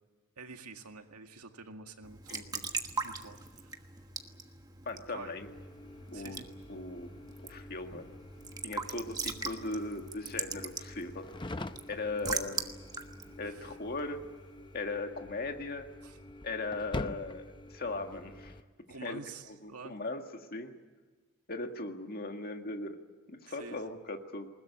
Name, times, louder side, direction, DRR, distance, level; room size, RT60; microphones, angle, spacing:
voice 1, 0.4-2.5 3.0-3.8 5.1-5.3 6.1-6.5 13.5-13.8 16.0-16.2 18.9-20.0 23.5-23.9, right 4 dB, 90° right, 5 dB, 2.1 m, -48 dB
Raindrop / Drip / Trickle dribble, 2.0-14.5, right 4 dB, 15° right, 1.3 m, -41 dB
voice 2, 2.3-2.6 4.9-5.5 6.1-6.4 6.7-7.1 7.4-8.1 8.6-11.3 11.9-12.7 13.4-14.2 14.7-15.9 16.4-18.6 19.0-19.2 19.5-20.8 21.5-23.0 23.3-24.5, left 2 dB, 45° left, 5 dB, 1.9 m, -38 dB
sound 1, 5.4-18.6, left 2 dB, 20° left, 0.7 m, -46 dB
21.0 x 20.0 x 10.0 m, 1.3 s
head